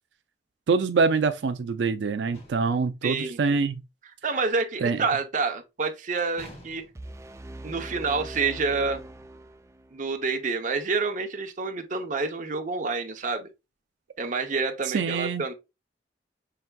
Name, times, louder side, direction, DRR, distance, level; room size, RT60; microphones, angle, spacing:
voice 1, 0.7-3.8 4.8-5.0 14.9-15.4, right 4 dB, 90° right, 0.4 m, -25 dB
sound 1, 2.3-2.9 6.4-7.2, left 1 dB, 35° left, 1.2 m, -48 dB
voice 2, 3.0-3.4 4.2-6.8 7.6-9.0 9.9-13.5 14.2-15.5, right 4 dB, 45° right, 0.7 m, -28 dB
sound 2, 6.9-10.0, right 1 dB, 15° right, 0.4 m, -41 dB
5.8 x 3.4 x 2.3 m
head